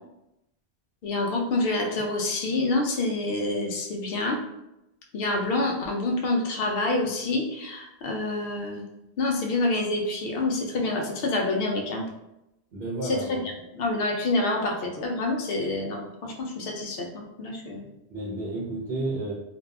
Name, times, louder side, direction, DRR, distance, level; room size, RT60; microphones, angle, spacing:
voice 1, 1.0-4.4 5.1-8.8 9.2-12.1 13.0-17.9, left 2 dB, 65° left, 1 dB, 0.7 m, -27 dB
voice 2, 12.7-13.5 18.1-19.3, right 2 dB, 60° right, -6 dB, 0.8 m, -31 dB
2.6 x 2.3 x 2.2 m, 0.88 s
omnidirectional pair, 1.1 m